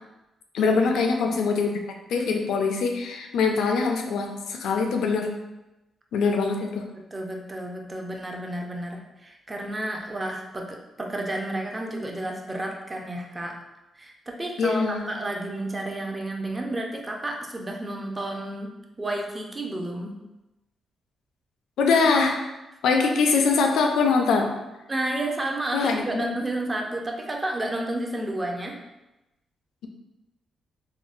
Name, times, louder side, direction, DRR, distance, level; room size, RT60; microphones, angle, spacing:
voice 1, 0.5-1.7 2.1-5.3 6.1-6.9 14.6-15.2 21.8-22.4 22.8-24.5 25.7-26.3, left 4 dB, 85° left, 3 dB, 0.4 m, -23 dB
voice 2, 6.9-13.6 14.0-20.2 24.9-28.8, right 1 dB, 25° right, 1 dB, 0.5 m, -31 dB
3.6 x 2.0 x 2.5 m, 0.98 s
cardioid pair, 75°, 0 cm